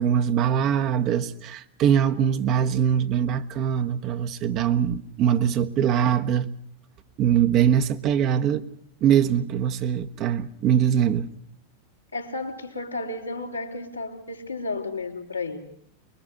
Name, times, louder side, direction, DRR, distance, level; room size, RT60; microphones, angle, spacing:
voice 1, 0.0-6.5 7.2-8.6 9.0-11.3, right 9 dB, 35° right, 1.3 m, -22 dB
voice 2, 12.1-15.7, left 3 dB, 85° left, 3.4 m, -32 dB
25.0 x 22.0 x 6.7 m
figure-of-eight pair, 90°, 0 cm